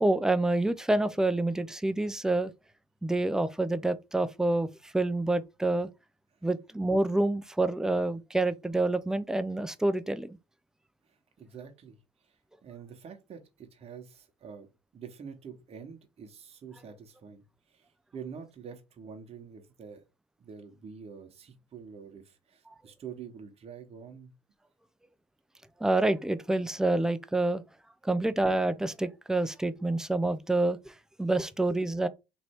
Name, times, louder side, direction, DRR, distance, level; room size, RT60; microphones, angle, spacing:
voice 1, 0.0-2.5 3.0-5.9 6.4-10.4 25.8-27.6 28.0-32.1, right 2 dB, 5° right, 0.4 m, -27 dB
voice 2, 11.1-12.0 12.2-12.4 12.6-14.7 14.9-20.0 20.4-24.3, right 6 dB, 40° right, 1.0 m, -46 dB
3.2 x 2.7 x 4.4 m
supercardioid pair, 80°, 16 cm